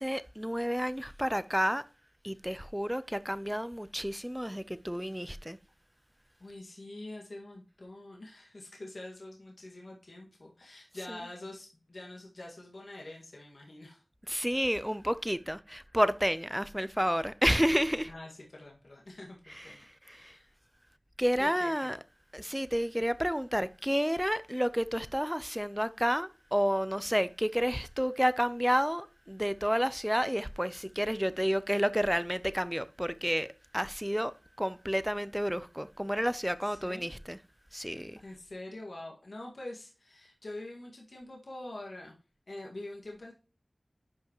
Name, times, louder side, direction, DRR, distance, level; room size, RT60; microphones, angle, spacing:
voice 1, 0.0-1.8 2.2-5.6 10.9-11.3 14.2-18.1 19.4-20.4 21.2-22.0 22.3-37.4 37.7-38.2, equal, 5° right, 0.6 m, -30 dB
voice 2, 6.4-14.0 18.1-20.5 21.4-21.9 36.6-37.1 37.8-42.2 42.5-43.3, left 1 dB, 75° left, 1.9 m, -45 dB
10.5 x 5.5 x 3.0 m
wide cardioid pair, 50°, 0 cm